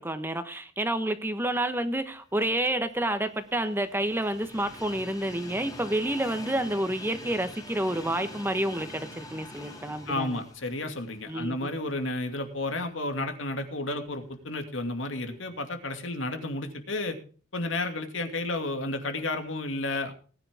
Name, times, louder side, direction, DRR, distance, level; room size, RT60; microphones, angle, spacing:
voice 1, 0.0-10.4 11.3-11.7, right 1 dB, 10° right, 9 dB, 1.2 m, -29 dB
Train, 2.3-12.4 12.9-13.0 14.1-14.2, left 1 dB, 20° left, 3.3 m, -45 dB
voice 2, 10.1-17.2 17.5-20.1, left 2 dB, 85° left, 6 dB, 2.6 m, -32 dB
19.0 x 10.0 x 3.7 m, 0.40 s
head